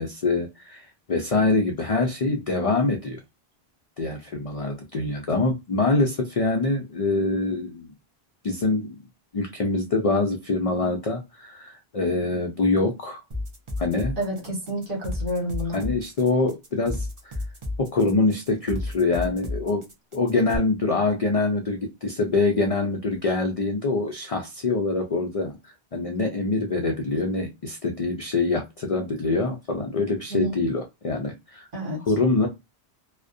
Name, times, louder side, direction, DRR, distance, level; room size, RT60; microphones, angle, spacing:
voice 1, 0.0-3.2 4.0-7.9 8.4-9.0 9.3-13.2 13.8-14.2 15.7-17.4 17.8-19.8 20.1-31.7 32.1-32.5, left 3 dB, 55° left, 0.4 m, -25 dB
sound 1, 13.3-20.6, left 2 dB, 35° right, 0.6 m, -32 dB
voice 2, 14.2-15.8 30.3-30.5 31.7-32.0, equal, 55° right, 1.4 m, -29 dB
2.5 x 2.1 x 2.5 m
omnidirectional pair, 1.1 m